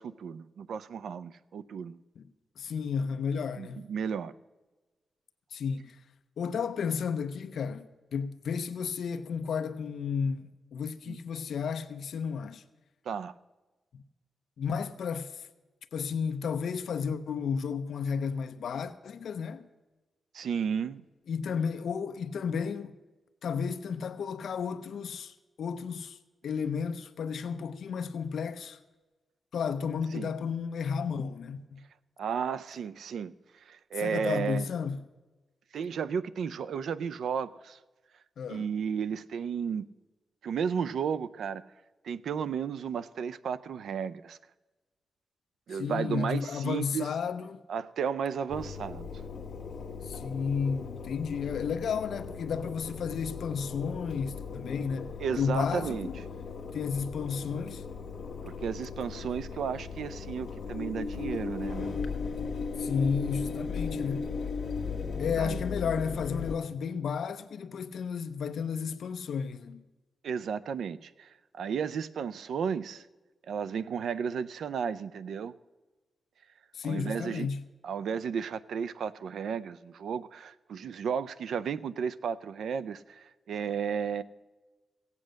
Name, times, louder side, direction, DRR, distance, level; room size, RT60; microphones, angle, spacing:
voice 1, 0.0-2.0 3.6-4.3 11.1-11.2 13.1-13.3 20.3-21.0 30.1-30.3 32.2-33.3 33.6-34.7 35.7-37.8 38.5-39.9 40.4-41.6 42.0-44.4 45.7-47.1 47.7-49.1 55.2-56.1 58.4-61.9 65.4-65.6 70.2-73.0 73.5-75.5 76.8-77.5 77.8-84.2, right 7 dB, 90° right, 0.5 m, -33 dB
voice 2, 2.6-3.8 5.5-6.0 6.4-12.6 13.9-14.0 14.6-15.5 15.9-19.7 21.3-22.9 23.4-26.2 26.4-28.8 29.5-31.8 34.0-35.0 38.4-38.7 45.7-47.6 50.0-55.1 55.4-56.2 56.7-57.8 62.8-64.3 65.2-69.8 76.7-77.6, left 6 dB, 70° left, 0.6 m, -32 dB
Engine, 48.5-66.6, left 5 dB, 50° left, 1.4 m, -37 dB
16.5 x 8.4 x 6.4 m
wide cardioid pair, 170°, 0 cm